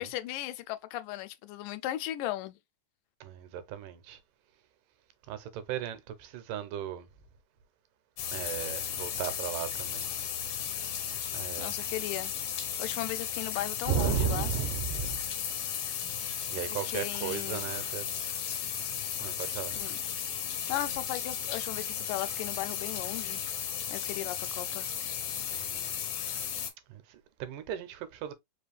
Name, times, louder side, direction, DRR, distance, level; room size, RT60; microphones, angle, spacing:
voice 1, 0.0-2.6 11.6-12.3 12.8-14.5 16.6-17.7 19.7-20.0 20.7-23.4 23.9-24.9, left 14 dB, 85° left, 2.2 m, -36 dB
voice 2, 3.2-4.2 5.3-7.1 8.3-10.1 11.3-11.7 13.9-15.2 16.5-18.1 19.2-19.7 25.5-25.9 26.9-28.3, right 8 dB, 90° right, 2.3 m, -35 dB
sound 1, 8.2-26.7, left 9 dB, 70° left, 1.5 m, -35 dB
5.3 x 2.5 x 3.3 m
omnidirectional pair, 3.7 m